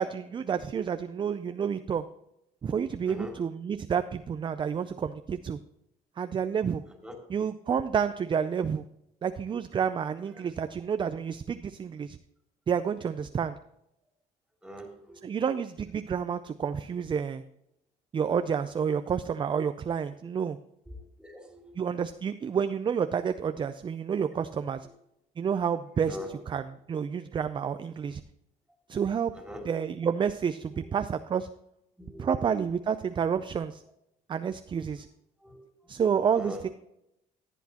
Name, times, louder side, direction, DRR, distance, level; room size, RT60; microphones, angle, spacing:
voice 1, 0.0-2.0 2.6-5.6 6.2-6.8 7.3-8.8 9.2-12.2 12.7-13.6 15.2-17.4 18.1-20.6 21.8-24.9 25.4-26.2 26.5-26.6 26.9-28.2 28.9-29.3 29.7-31.5 32.2-33.8 34.3-35.1 35.9-36.7, right 7 dB, 30° right, 10 dB, 0.4 m, -29 dB
voice 2, 3.1-3.4 6.9-7.2 10.2-10.5 14.6-15.3 20.2-20.4 20.8-22.0 24.8-24.9 26.0-26.4 27.1-27.3 28.9-29.7 30.7-30.9 32.0-32.6 34.9-35.0 35.4-36.7, left 1 dB, 5° right, 1 dB, 2.5 m, -45 dB
14.5 x 8.3 x 2.9 m, 0.79 s
cardioid pair, 110°, 17 cm